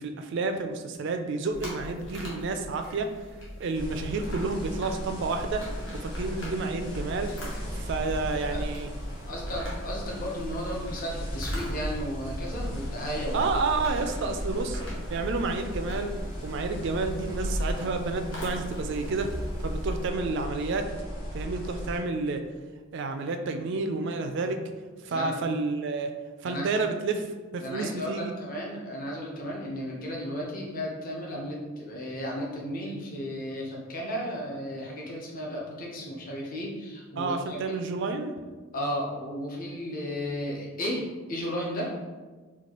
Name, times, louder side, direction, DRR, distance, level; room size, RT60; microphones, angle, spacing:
voice 1, 0.0-3.1 3.6-5.6 5.9-7.3 7.7-8.9 13.3-14.8 15.1-16.1 16.4-19.3 19.6-20.9 21.3-22.4 22.9-24.6 25.0-26.1 26.4-28.3 37.2-38.3, right 3 dB, 55° right, 6 dB, 0.3 m, -30 dB
sound 1, 1.5-20.1, equal, 55° left, 1.0 m, -40 dB
sound 2, 3.7-22.0, equal, 85° left, 1.4 m, -36 dB
voice 2, 9.3-13.4 13.9-14.0 14.3-14.4 25.1-25.4 26.4-26.7 27.6-37.8 38.7-41.0 41.3-41.9, equal, 40° left, -2 dB, 0.7 m, -34 dB
4.4 x 2.3 x 2.9 m, 1.3 s
head